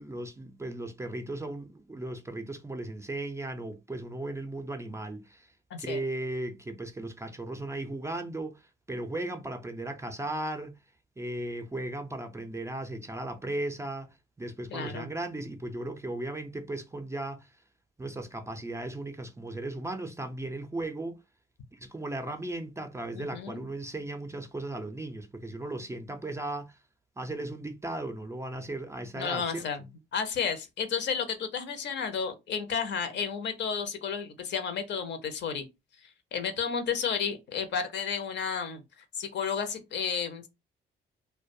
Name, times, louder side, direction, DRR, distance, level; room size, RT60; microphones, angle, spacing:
voice 1, 0.0-5.5 5.8-10.8 11.2-17.5 18.0-21.2 21.7-26.8 27.2-29.6, right 2 dB, 15° right, 0.3 m, -36 dB
voice 2, 14.7-15.1 23.1-23.6 29.2-29.8 30.1-35.7 36.3-38.8 39.1-40.5, left 6 dB, 65° left, 0.6 m, -32 dB
2.3 x 2.2 x 2.6 m
cardioid pair, 90°, 20 cm